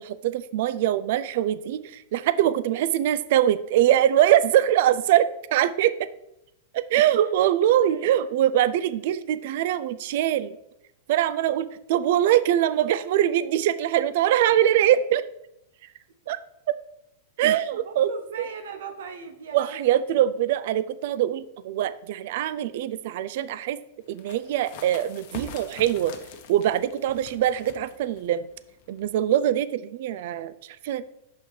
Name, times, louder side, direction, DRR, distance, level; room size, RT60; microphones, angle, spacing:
voice 1, 0.0-5.9 6.7-10.6 11.1-15.2 16.3-16.4 17.4-18.1 18.4-18.5 19.5-23.8 24.1-26.1 26.5-28.4 28.9-31.0, right 11 dB, 60° right, 15 dB, 0.3 m, -23 dB
voice 2, 7.9-8.2 17.7-19.8, right 5 dB, 80° right, 7 dB, 0.8 m, -39 dB
sound 1, 24.1-29.4, left 5 dB, 55° left, 0.8 m, -44 dB
6.1 x 5.6 x 3.1 m, 0.85 s
supercardioid pair, 145°, 0 cm